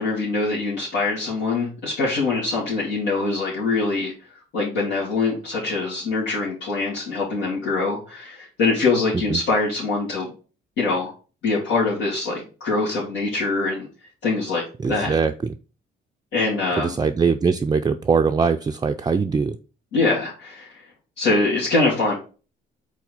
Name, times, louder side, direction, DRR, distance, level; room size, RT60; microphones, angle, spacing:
voice 1, 0.0-4.1 4.5-10.3 10.8-11.1 11.4-13.9 14.2-14.6 14.9-15.1 16.3-16.9 19.9-20.7 21.2-22.1, left 3 dB, 85° left, -8 dB, 2.6 m, -23 dB
voice 2, 14.8-15.5 16.8-19.6, right 5 dB, 20° right, 5 dB, 0.4 m, -21 dB
4.6 x 4.2 x 5.4 m, 0.35 s
cardioid pair, 80°, 19 cm